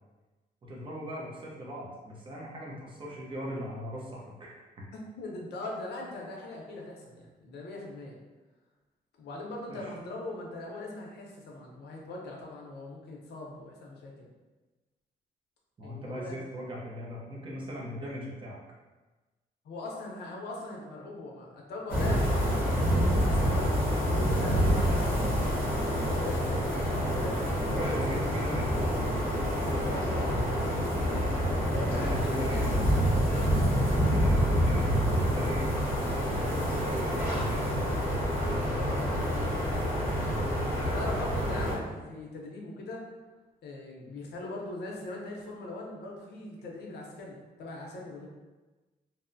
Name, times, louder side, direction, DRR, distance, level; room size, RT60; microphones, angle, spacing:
voice 1, 0.6-4.8 9.7-9.9 15.8-18.6 26.1-26.6 27.7-29.0 31.9-32.8 33.9-38.0 38.5-38.8 40.6-40.9, equal, 30° right, -4 dB, 0.6 m, -39 dB
voice 2, 4.9-8.1 9.2-14.1 15.8-16.4 19.6-23.7 24.1-25.5 26.0-28.0 28.3-28.4 29.6-30.4 31.7-33.0 33.4-34.0 40.9-43.0 43.6-48.3, left 2 dB, 90° left, -1 dB, 0.6 m, -41 dB
sound 1, 21.9-41.7, equal, 15° right, 1.2 m, -27 dB
2.8 x 2.0 x 2.5 m, 1.2 s
cardioid pair, 145°, 17 cm